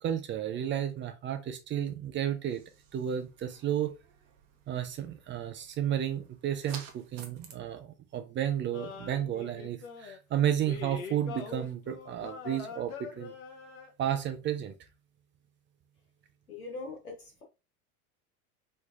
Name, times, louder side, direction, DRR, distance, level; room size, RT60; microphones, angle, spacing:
voice 1, 0.0-2.6 2.9-3.9 4.7-13.3 14.0-14.7, right 10 dB, 25° right, 0.5 m, -32 dB
sound 1, 2.4-7.5, right 7 dB, 50° right, 0.9 m, -52 dB
sound 2, 8.7-10.2 10.6-13.9, left 6 dB, 70° left, 0.9 m, -43 dB
voice 2, 16.5-17.4, left 3 dB, 90° left, 1.7 m, -41 dB
3.2 x 3.2 x 2.4 m
hypercardioid pair, 80°, 43 cm